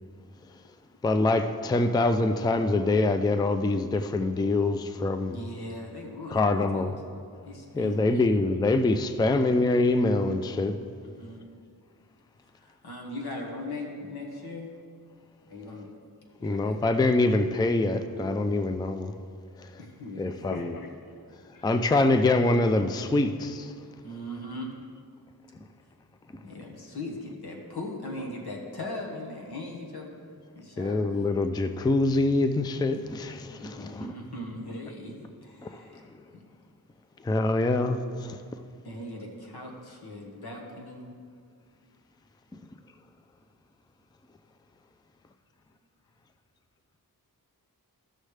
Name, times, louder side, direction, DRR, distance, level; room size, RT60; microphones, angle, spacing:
voice 1, 1.0-5.4 6.3-6.9 7.7-10.7 16.4-19.1 19.6-19.7 20.2-20.7 21.6-23.7 30.8-34.1 35.6-36.0 37.2-38.4, left 2 dB, 10° left, 0.3 m, -25 dB
voice 2, 5.2-6.9 7.4-8.3 11.0-11.4 12.6-14.7 15.5-15.9 16.4-16.8 19.8-20.4 24.0-24.7 26.4-30.1 30.5-31.0 33.5-36.0 36.4-36.5 38.8-41.1, left 1 dB, 80° left, 1.5 m, -39 dB
voice 3, 20.4-21.0 21.5-21.8 23.8-24.0, left 4 dB, 60° left, 0.6 m, -43 dB
14.5 x 6.4 x 3.3 m
wide cardioid pair, 100°, 38 cm